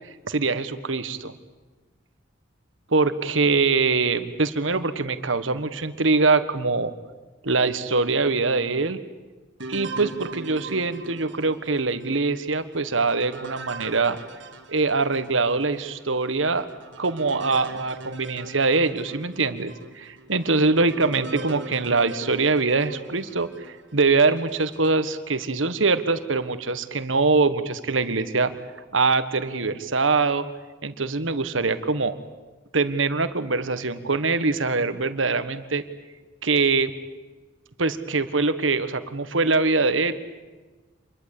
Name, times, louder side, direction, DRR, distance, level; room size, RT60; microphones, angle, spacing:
voice 1, 0.2-1.3 2.9-6.9 7.4-9.0 9.7-14.2 14.7-16.7 17.0-28.5 28.9-30.4 30.8-32.2 32.7-35.8 36.4-36.9 37.8-40.1, right 3 dB, 85° right, 11 dB, 1.6 m, -23 dB
sound 1, 9.6-15.4 15.9-16.0 16.6-23.8 24.4-25.0, right 2 dB, 70° right, 2.1 m, -40 dB
27.0 x 22.0 x 8.5 m, 1.3 s
head